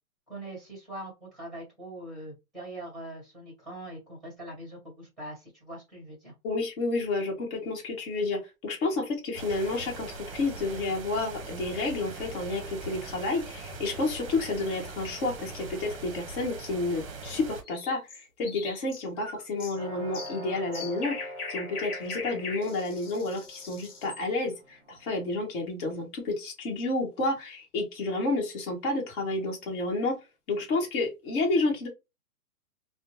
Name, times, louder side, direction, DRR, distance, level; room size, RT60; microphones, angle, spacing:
voice 1, 0.3-6.3, right 1 dB, ahead, -2 dB, 1.2 m, -42 dB
voice 2, 6.4-21.1 21.5-30.1 30.5-31.9, left 2 dB, 40° left, -1 dB, 1.1 m, -30 dB
sound 1, 9.3-17.6, right 3 dB, 40° right, 0.7 m, -41 dB
sound 2, 17.6-24.2, left 4 dB, 75° left, 1.0 m, -40 dB
sound 3, 19.7-25.4, equal, 20° right, 1.1 m, -44 dB
2.5 x 2.1 x 2.9 m, 0.24 s
hypercardioid pair, 165°, 45 cm